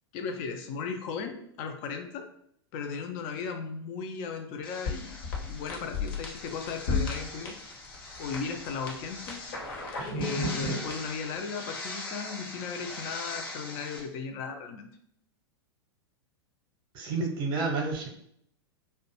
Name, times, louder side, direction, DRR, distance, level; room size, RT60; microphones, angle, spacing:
voice 1, 0.1-2.3 2.7-5.2 5.5-7.6 8.2-9.6 10.1-14.9, left 5 dB, 35° left, 6 dB, 0.4 m, -36 dB
sound 1, 4.6-14.0, left 2 dB, 55° left, 0.8 m, -35 dB
voice 2, 16.9-18.1, right 3 dB, 35° right, 1 dB, 0.7 m, -30 dB
2.5 x 2.1 x 2.8 m, 0.68 s
figure-of-eight pair, 95°, 14 cm